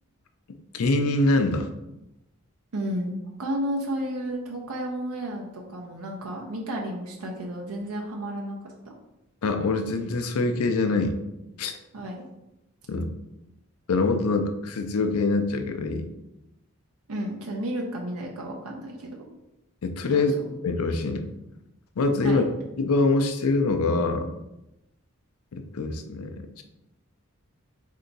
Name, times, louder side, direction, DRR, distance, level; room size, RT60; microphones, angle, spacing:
voice 1, 0.7-1.7 9.4-11.2 11.6-11.7 12.9-13.1 13.9-16.1 19.8-20.3 20.6-21.3 22.0-22.5 22.8-24.3 25.5-26.6, left 3 dB, 85° left, 6 dB, 0.5 m, -24 dB
voice 2, 2.7-8.6 8.8-8.9 11.9-12.3 17.1-19.3 20.1-20.4 22.2-22.4, right 1 dB, 85° right, -1 dB, 0.7 m, -32 dB
4.5 x 2.7 x 3.9 m, 0.91 s
head